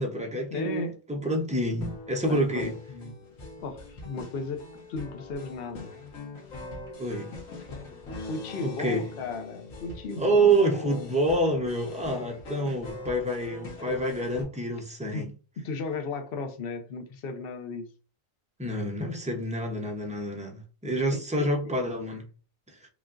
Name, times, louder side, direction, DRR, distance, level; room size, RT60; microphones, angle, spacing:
voice 1, 0.0-2.7 7.0-7.3 8.6-9.0 10.2-15.3 18.6-22.2 22.7-22.8, right 2 dB, 10° right, 0.4 m, -27 dB
voice 2, 0.5-0.9 2.3-3.1 3.6-4.6 4.9-5.9 8.3-11.1 15.1-15.3 15.6-17.9 21.1-21.5, left 3 dB, 55° left, 0.8 m, -35 dB
sound 1, 1.8-14.4, left 3 dB, 85° left, 1.6 m, -42 dB
5.0 x 2.4 x 2.5 m
omnidirectional pair, 1.4 m